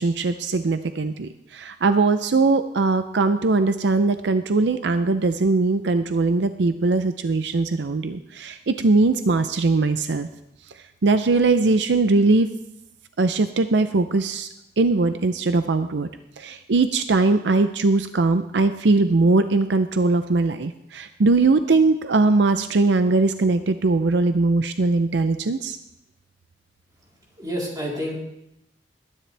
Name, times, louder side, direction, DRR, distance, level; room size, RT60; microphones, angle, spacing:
voice 1, 0.0-10.3 11.0-12.5 13.2-14.5 14.8-16.1 16.4-25.8, right 3 dB, 75° right, 10 dB, 0.6 m, -20 dB
voice 2, 27.4-28.1, equal, 25° right, -4 dB, 3.6 m, -28 dB
20.5 x 10.5 x 3.4 m, 0.84 s
head